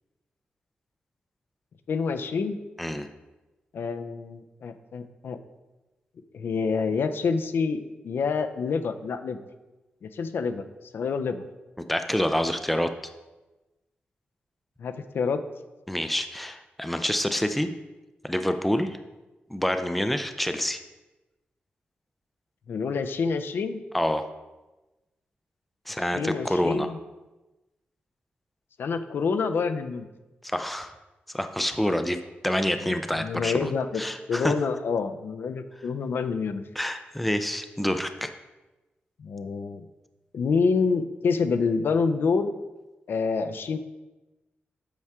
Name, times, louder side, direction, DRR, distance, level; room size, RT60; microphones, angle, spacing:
voice 1, 1.9-2.6 3.7-5.4 6.3-9.4 10.0-10.6 10.9-11.5 14.8-15.4 22.7-23.8 26.1-27.0 28.8-30.1 32.8-34.0 34.3-36.6 39.2-39.8 40.3-42.5 43.1-43.8, left 5 dB, 70° left, 9 dB, 0.4 m, -27 dB
voice 2, 11.9-12.9 15.9-17.7 18.2-19.0 19.5-20.8 23.9-24.3 25.9-26.9 30.4-30.9 31.3-34.5 36.8-38.3, left 1 dB, ahead, 8 dB, 0.4 m, -27 dB
8.3 x 4.6 x 3.5 m, 1.1 s
wide cardioid pair, 125°, 4 cm